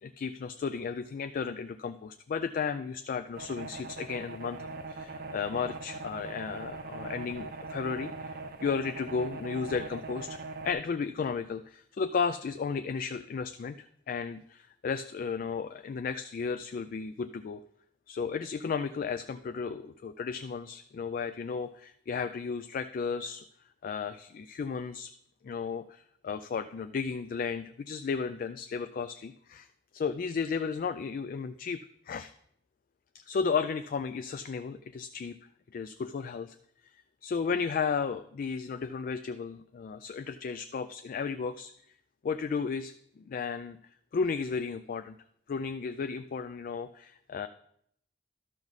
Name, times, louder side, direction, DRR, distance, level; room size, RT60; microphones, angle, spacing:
voice 1, 0.0-10.4 10.6-17.6 18.1-23.4 23.8-25.1 25.4-29.7 29.9-32.3 33.1-35.4 35.7-36.6 36.9-41.7 42.2-43.8 44.1-45.2 45.5-47.5, left 5 dB, 50° left, 10 dB, 0.3 m, -34 dB
sound 1, 3.4-10.7, right 3 dB, 55° right, 0.7 m, -41 dB
12.0 x 6.0 x 4.0 m, 0.69 s
head